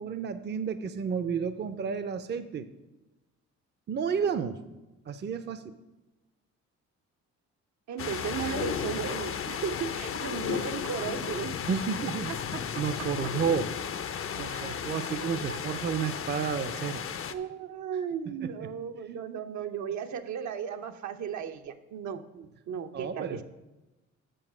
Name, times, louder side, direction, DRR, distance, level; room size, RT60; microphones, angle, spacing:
voice 1, 0.0-2.7 3.9-4.6 5.1-5.8 11.7-12.3 12.8-13.7 14.2-17.0 18.3-18.7 22.3-22.5 22.9-23.4, right 6 dB, 35° right, 11 dB, 0.5 m, -31 dB
voice 2, 7.9-11.5 12.5-13.3 14.5-14.9 15.2-15.6 17.3-22.2 22.7-23.4, right 7 dB, 70° right, 7 dB, 0.8 m, -36 dB
sound 1, 8.0-17.3, left 8 dB, 45° left, 0.6 m, -34 dB
7.8 x 6.8 x 6.0 m, 1.1 s
cardioid pair, 90°, 30 cm